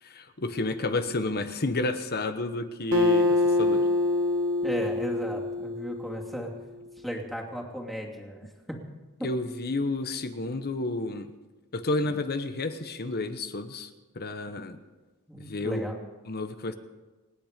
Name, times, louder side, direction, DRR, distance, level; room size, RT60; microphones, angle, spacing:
voice 1, 0.0-3.9 9.2-11.3 11.7-14.8 15.4-15.8 16.3-16.7, left 2 dB, 45° left, 9 dB, 1.1 m, -31 dB
Acoustic guitar, 2.9-6.5, left 2 dB, 60° right, 1.3 m, -25 dB
voice 2, 4.6-6.5 7.0-8.8 9.2-9.3 15.3-16.0, equal, ahead, -1 dB, 2.6 m, -35 dB
27.5 x 9.4 x 5.2 m, 1.2 s
head